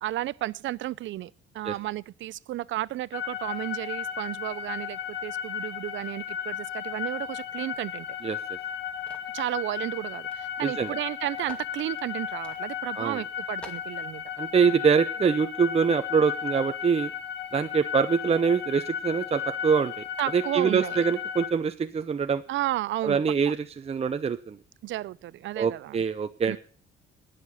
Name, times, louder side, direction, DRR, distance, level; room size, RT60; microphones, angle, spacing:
voice 1, 0.0-8.1 9.3-14.2 20.2-21.0 22.5-23.2 24.8-26.0 26.5-26.6, right 15 dB, 75° right, 0.5 m, -33 dB
sound 1, 3.1-21.5, left 8 dB, 65° left, 1.5 m, -35 dB
sound 2, 9.1-9.4 10.3-10.4 10.6-10.7 11.4-11.7 12.4-12.6 13.1-13.2 13.6-13.9, equal, 5° left, 2.3 m, -46 dB
voice 2, 10.6-11.0 13.0-13.2 14.4-17.1 17.5-19.9 20.3-22.4 23.0-24.6 25.6-26.6, right 6 dB, 30° right, 0.6 m, -24 dB
19.0 x 6.7 x 5.5 m
cardioid pair, 90°, 20 cm